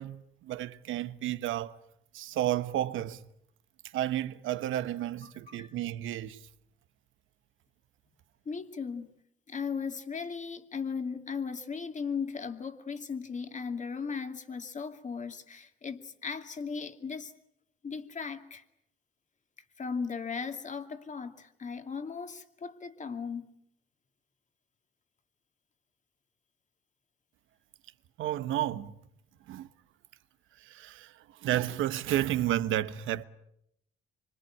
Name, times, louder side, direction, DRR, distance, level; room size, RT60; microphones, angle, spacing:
voice 1, 0.0-1.8 2.1-3.2 3.9-6.5 28.2-29.0 29.5-29.7 30.6-33.2, right 13 dB, 85° right, 1.2 m, -32 dB
voice 2, 5.2-5.7 8.5-9.1 9.5-17.3 17.8-18.6 19.8-23.5, left 5 dB, 40° left, 2.5 m, -37 dB
25.5 x 25.0 x 8.7 m
cardioid pair, 90°, 20 cm